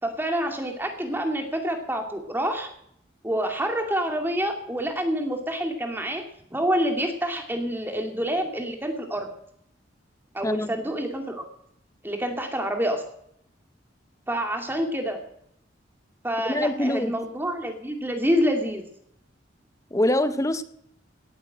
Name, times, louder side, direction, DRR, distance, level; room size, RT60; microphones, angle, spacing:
voice 1, 0.0-2.7 3.2-6.2 6.5-9.3 10.3-11.4 12.0-13.0 14.3-15.2 16.2-18.8, equal, 10° right, 4 dB, 2.3 m, -27 dB
voice 2, 10.4-10.8 16.4-17.1 19.9-20.6, left 1 dB, 15° left, 12 dB, 0.7 m, -24 dB
18.5 x 8.0 x 7.8 m, 0.72 s
head